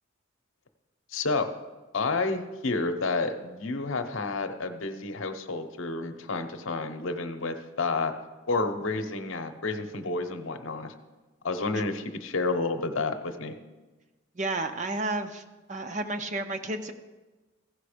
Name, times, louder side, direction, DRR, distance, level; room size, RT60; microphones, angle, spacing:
voice 1, 1.1-1.5 1.9-8.1 8.5-10.9 11.4-13.6, left 3 dB, 70° left, 6 dB, 0.8 m, -30 dB
voice 2, 14.3-15.4 15.7-16.9, right 2 dB, 35° right, 7 dB, 0.6 m, -31 dB
15.5 x 5.2 x 5.0 m, 1.2 s
head